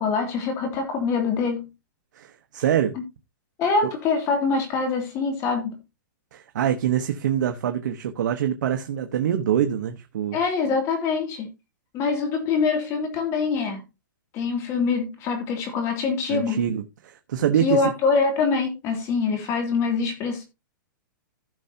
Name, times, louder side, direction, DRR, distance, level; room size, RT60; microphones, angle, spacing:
voice 1, 0.0-1.7 3.6-5.8 10.3-11.5 11.9-13.8 14.3-16.6 17.6-20.4, left 4 dB, 25° left, 2.6 m, -24 dB
voice 2, 2.1-3.0 6.3-10.4 16.3-17.8, right 10 dB, 65° right, 1.1 m, -25 dB
15.5 x 5.7 x 2.8 m
hypercardioid pair, 160°, 11 cm